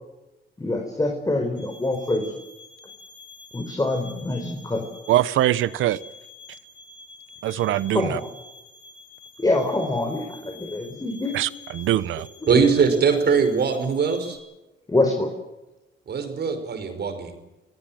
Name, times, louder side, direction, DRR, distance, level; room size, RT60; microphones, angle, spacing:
voice 1, 0.6-2.3 3.5-4.9 7.9-8.2 9.4-11.4 12.5-12.7 14.9-15.3, left 2 dB, 20° left, 4 dB, 4.6 m, -25 dB
sound 1, 1.6-14.4, left 3 dB, 65° left, 7.8 m, -47 dB
voice 2, 5.1-6.0 7.4-8.2 11.3-12.3, right 13 dB, 85° right, 18 dB, 0.9 m, -22 dB
voice 3, 12.5-14.4 16.1-17.4, right 6 dB, 55° right, 8 dB, 5.6 m, -21 dB
27.5 x 18.0 x 7.7 m, 1.0 s
cardioid pair, 90°, 20 cm